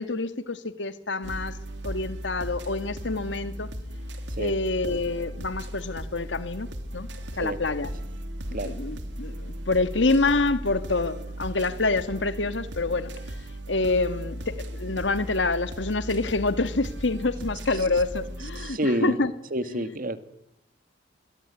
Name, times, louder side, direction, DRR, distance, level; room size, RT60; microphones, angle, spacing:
voice 1, 0.0-1.6 1.8-3.7 4.4-6.7 6.9-7.1 7.4-7.9 8.5-13.1 13.7-19.3 19.7-19.9, left 3 dB, 85° left, 1.7 m, -27 dB
sound 1, 1.2-18.7, equal, 75° right, 3.2 m, -36 dB
voice 2, 18.6-19.2 19.5-20.3, right 1 dB, 50° right, 1.9 m, -28 dB
26.0 x 22.0 x 9.8 m
head